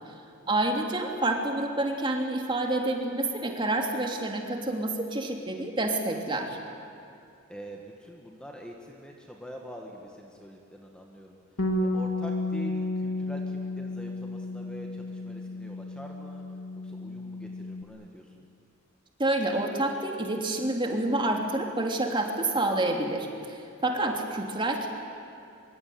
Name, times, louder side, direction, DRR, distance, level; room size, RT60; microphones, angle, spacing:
voice 1, 0.5-6.6 19.2-24.9, right 2 dB, 25° right, 2 dB, 3.1 m, -28 dB
voice 2, 7.5-11.4 11.8-16.4 16.8-18.5 24.0-24.2, equal, 5° left, 0 dB, 2.0 m, -45 dB
Bass guitar, 11.6-17.8, left 2 dB, 80° left, 2.6 m, -32 dB
24.5 x 24.0 x 9.5 m, 2.6 s
head